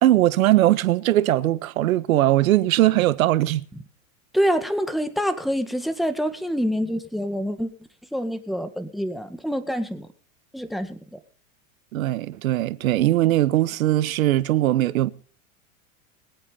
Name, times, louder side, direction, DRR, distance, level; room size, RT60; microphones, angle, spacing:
voice 1, 0.0-3.6 11.9-15.1, right 14 dB, 75° right, 1.4 m, -20 dB
voice 2, 4.3-7.7 8.1-10.1 10.5-11.2, equal, ahead, 1.8 m, -26 dB
22.0 x 8.4 x 5.7 m
hypercardioid pair, 120°, 41 cm